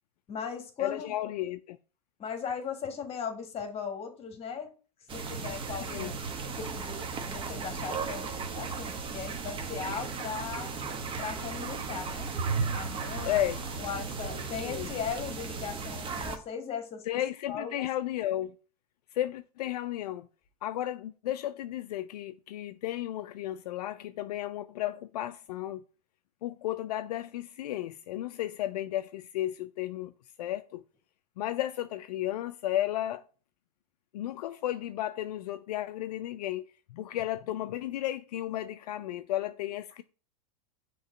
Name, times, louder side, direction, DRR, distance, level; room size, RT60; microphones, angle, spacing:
voice 1, 0.3-1.1 2.2-4.7 5.1-6.1 6.6-10.7 11.2-12.4 12.7-13.5 13.8-17.1 17.5-17.9, left 6 dB, 30° left, 1.6 m, -38 dB
voice 2, 0.8-1.8 5.9-6.1 13.2-13.6 14.6-14.9 17.1-18.5 19.1-20.3 20.6-25.8 26.4-30.1 30.4-30.8 31.4-33.2 34.1-40.0, left 13 dB, 70° left, 0.4 m, -33 dB
sound 1, 5.1-16.4, right 4 dB, 25° right, 1.0 m, -35 dB
6.2 x 3.0 x 5.0 m
hypercardioid pair, 110°, 21 cm